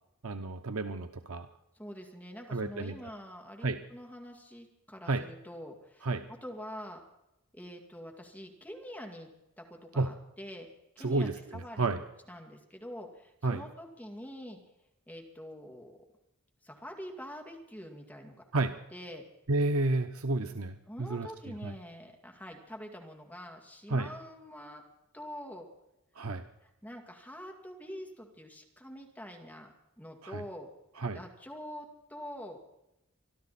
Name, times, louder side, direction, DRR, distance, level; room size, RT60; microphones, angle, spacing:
voice 1, 0.2-1.5 2.5-3.0 3.6-3.8 5.1-5.2 6.0-6.3 10.0-10.1 11.0-12.0 13.4-13.6 18.5-18.7 19.5-21.3 21.6-21.7 23.9-24.1 26.2-26.4 30.2-30.4 31.0-31.2, right 2 dB, 90° right, 7 dB, 0.9 m, -31 dB
voice 2, 1.7-7.0 7.5-9.3 9.6-10.7 11.0-14.6 15.1-16.0 16.6-19.2 20.9-24.8 25.1-25.7 26.6-30.7 31.1-32.6, equal, 5° left, 2 dB, 2.2 m, -45 dB
25.0 x 12.5 x 4.2 m, 0.89 s
head